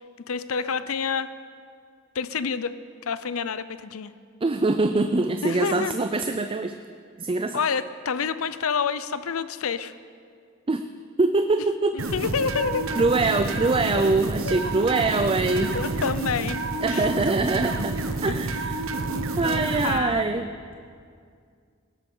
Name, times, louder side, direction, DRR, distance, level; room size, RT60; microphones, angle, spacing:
voice 1, 0.3-1.3 2.1-2.7 3.1-4.1 5.4-6.0 7.5-9.9 11.9-12.9 13.9-14.0 14.4-14.6 15.7-16.6 16.9-17.1 18.3-18.4 19.1-20.3, left 6 dB, 80° left, 14 dB, 0.6 m, -28 dB
voice 2, 4.4-6.7 7.2-7.6 10.7-10.8 11.2-12.0 12.9-15.8 16.8-18.0 18.2-18.8 19.4-20.5, right 3 dB, 25° right, 8 dB, 0.5 m, -23 dB
sound 1, 12.0-20.0, right 2 dB, 70° right, 1.0 m, -29 dB
18.0 x 13.0 x 5.6 m, 2.2 s
head